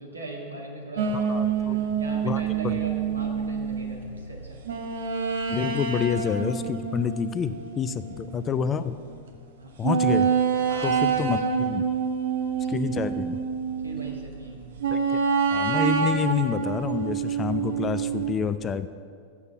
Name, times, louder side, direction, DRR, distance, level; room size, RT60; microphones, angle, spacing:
voice 1, 0.0-4.6 9.6-9.7 10.7-10.9 12.6-12.8 13.8-14.7 15.2-15.3, right 2 dB, 80° right, -2 dB, 1.8 m, -40 dB
sound 1, 1.0-8.7 9.1-9.2 9.8-14.2 14.8-18.3, right 6 dB, 60° right, 0.9 m, -27 dB
voice 2, 1.1-1.8 2.2-2.8 5.5-8.9 9.8-10.3 10.8-11.8 12.7-13.4 14.9-15.0 15.5-18.9, left 7 dB, 25° left, 12 dB, 0.4 m, -28 dB
8.0 x 7.0 x 7.5 m, 2.2 s
figure-of-eight pair, 90°, 0 cm